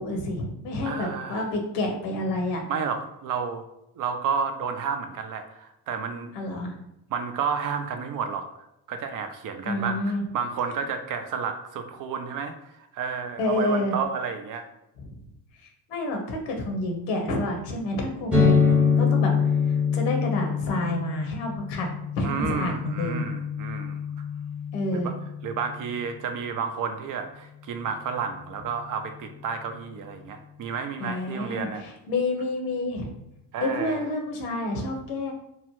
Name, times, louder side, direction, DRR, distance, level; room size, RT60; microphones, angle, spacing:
voice 1, 0.0-2.7 6.3-6.7 9.6-10.2 13.4-13.9 15.0-15.1 15.9-19.3 19.7-21.9 22.1-23.3 24.7-25.1 31.0-33.1 33.6-35.3, left 2 dB, 80° left, 2 dB, 0.9 m, -29 dB
voice 2, 0.8-1.5 2.7-3.6 4.0-6.3 7.1-8.5 8.9-14.7 22.2-24.0 24.9-25.2 25.4-31.8 33.5-34.0, right 6 dB, 45° right, 7 dB, 0.5 m, -31 dB
sound 1, 18.3-25.9, left 6 dB, 5° right, 0.8 m, -25 dB
2.9 x 2.1 x 3.0 m, 0.85 s
supercardioid pair, 75°, 46 cm